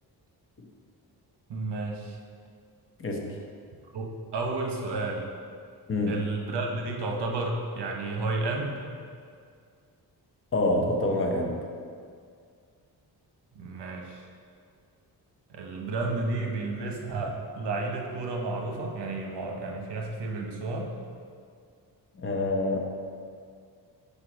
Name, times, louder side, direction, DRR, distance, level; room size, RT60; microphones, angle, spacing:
voice 1, 1.5-2.2 3.9-5.3 6.1-8.8 13.5-14.2 15.5-20.9, right 3 dB, 85° right, 1 dB, 0.9 m, -32 dB
voice 2, 3.0-3.3 5.9-6.2 10.5-11.6 22.2-22.8, left 2 dB, 30° left, 0 dB, 0.7 m, -26 dB
5.3 x 4.4 x 5.0 m, 2.2 s
wide cardioid pair, 155°, 40 cm